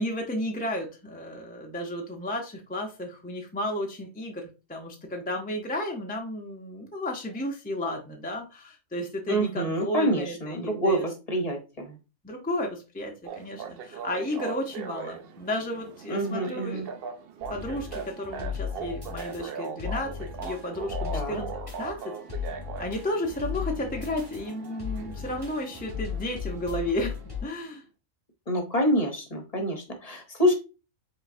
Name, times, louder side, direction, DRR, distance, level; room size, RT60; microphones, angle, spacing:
voice 1, 0.0-11.1 11.3-11.5 12.2-16.9 17.5-20.1 20.4-21.5 21.8-22.0 22.8-27.2 27.4-27.8, left 1 dB, 15° left, 1 dB, 0.3 m, -33 dB
voice 2, 9.3-12.0 16.1-16.9 21.1-21.4 28.5-30.5, equal, 30° left, 3 dB, 0.8 m, -27 dB
sound 1, 13.2-27.6, right 6 dB, 70° right, 0.5 m, -40 dB
sound 2, 17.4-27.4, left 7 dB, 15° right, 1.6 m, -37 dB
5.1 x 3.7 x 2.6 m, 0.31 s
omnidirectional pair, 1.5 m